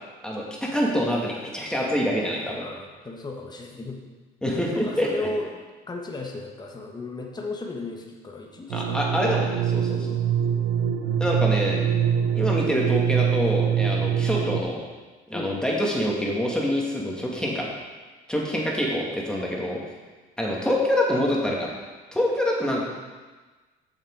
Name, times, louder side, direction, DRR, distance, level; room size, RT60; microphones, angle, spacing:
voice 1, 0.2-2.7 4.4-5.1 8.7-10.2 11.2-11.8 12.3-14.8 15.3-17.7 18.3-19.8 20.4-21.7 22.1-22.8, equal, 5° left, -3 dB, 2.3 m, -26 dB
voice 2, 2.5-4.0 4.7-5.5 5.9-9.1 11.0-11.4 15.3-15.5, left 2 dB, 20° left, 1 dB, 1.4 m, -35 dB
sound 1, 8.7-14.6, right 8 dB, 85° right, 0.7 m, -24 dB
7.6 x 6.7 x 4.8 m, 1.3 s
supercardioid pair, 80°, 19 cm